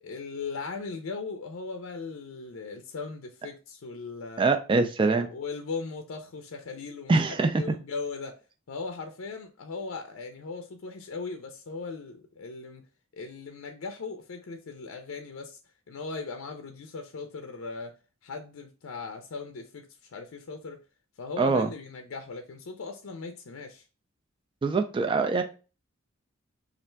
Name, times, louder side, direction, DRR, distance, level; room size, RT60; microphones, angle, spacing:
voice 1, 0.0-4.4 5.0-7.1 7.6-8.4 8.7-12.8 13.1-15.6 15.9-17.9 18.2-19.9 20.1-20.8 21.2-23.8, left 4 dB, 75° left, 0.5 m, -38 dB
voice 2, 4.4-5.3 7.1-7.7 21.4-21.7 24.6-25.4, right 3 dB, 25° right, 0.3 m, -24 dB
3.2 x 2.5 x 4.3 m
head